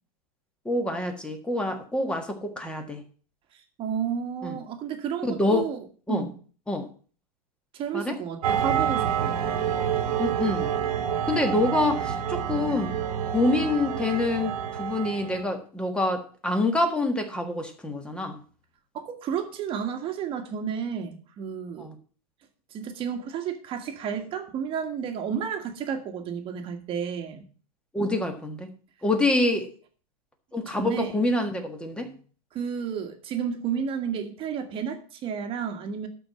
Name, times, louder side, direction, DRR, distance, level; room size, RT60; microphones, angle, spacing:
voice 1, 0.6-3.0 4.4-4.6 5.2-5.7 6.1-6.2 6.7-6.9 7.9-8.2 10.2-10.7 11.2-12.9 13.3-14.5 14.8-18.4 21.8-21.9 27.9-28.7 29.0-29.7 30.5-32.1, left 2 dB, 5° left, 1.5 m, -26 dB
voice 2, 3.5-6.3 7.7-9.4 18.9-21.9 22.7-27.4 30.7-31.1 32.5-36.1, right 7 dB, 25° right, 1.6 m, -32 dB
sound 1, 8.4-15.5, right 8 dB, 70° right, 1.5 m, -28 dB
12.5 x 4.5 x 7.5 m
supercardioid pair, 155°, 20 cm